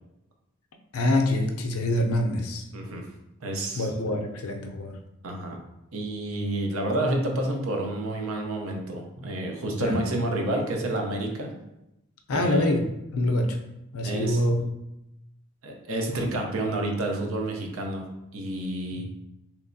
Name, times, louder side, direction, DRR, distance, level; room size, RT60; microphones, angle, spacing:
voice 1, 0.9-2.6 3.8-4.9 9.8-10.0 12.3-12.8 13.1-13.6 13.9-14.7 16.1-16.3 19.0-19.1, left 1 dB, 75° left, 4 dB, 0.5 m, -25 dB
voice 2, 2.7-3.1 3.4-3.9 5.2-5.6 5.9-11.6 12.3-12.7 14.0-14.4 15.6-18.0 18.3-19.1, right 1 dB, 70° right, 2 dB, 0.6 m, -29 dB
3.2 x 3.1 x 2.6 m, 0.89 s
head